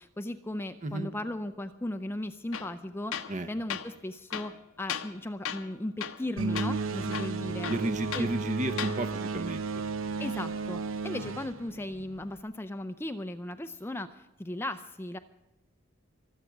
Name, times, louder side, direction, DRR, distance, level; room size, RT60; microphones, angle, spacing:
voice 1, 0.0-7.7 8.1-8.3 10.2-15.2, left 1 dB, 10° left, 10 dB, 0.5 m, -37 dB
Tools, 2.5-2.7 3.1-3.4 3.7-3.9 4.3-5.2 5.5-5.7 6.0-6.3 6.6-6.7 7.1-8.3 8.7-9.0, left 8 dB, 80° left, 1.0 m, -36 dB
sound 1, 6.4-12.4, right 4 dB, 70° right, 0.8 m, -33 dB
voice 2, 7.7-9.8, right 1 dB, 35° right, 11 dB, 0.8 m, -33 dB
24.5 x 8.3 x 6.0 m, 0.97 s
head